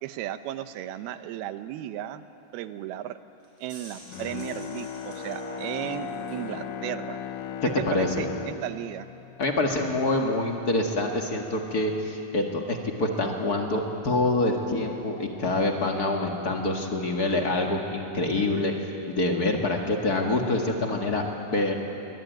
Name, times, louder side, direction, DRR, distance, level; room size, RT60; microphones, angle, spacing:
voice 1, 0.0-2.3 2.5-3.2 3.6-7.2 7.6-9.1, right 12 dB, 85° right, 11 dB, 2.8 m, -35 dB
sound 1, 3.4-6.5, right 1 dB, 25° right, 6.3 m, -50 dB
sound 2, 3.9-9.8, left 1 dB, 65° right, 7.8 m, -42 dB
Bowed string instrument, 4.0-10.3 10.7-10.8, left 10 dB, 75° left, 2.1 m, -38 dB
voice 2, 7.8-8.3 9.4-18.7 19.1-21.2 21.5-21.8, left 2 dB, 40° left, 2 dB, 1.5 m, -26 dB
24.0 x 21.5 x 9.2 m, 2.8 s
omnidirectional pair, 4.3 m